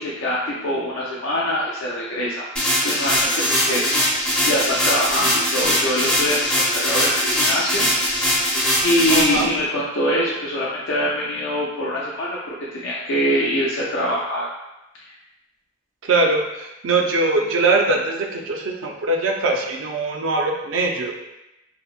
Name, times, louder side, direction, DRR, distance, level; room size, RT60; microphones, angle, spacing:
voice 1, 0.0-2.4 2.8-3.9 4.4-7.9 8.8-14.5, left 1 dB, 85° left, -6 dB, 0.4 m, -24 dB
sound 1, 2.6-9.4, equal, 5° left, 0.4 m, -21 dB
sound 2, 3.1-9.7, right 2 dB, 65° left, 0.9 m, -38 dB
voice 2, 9.1-9.5 16.0-21.1, right 3 dB, 70° right, 2 dB, 0.4 m, -21 dB
2.8 x 2.0 x 2.3 m, 0.94 s
head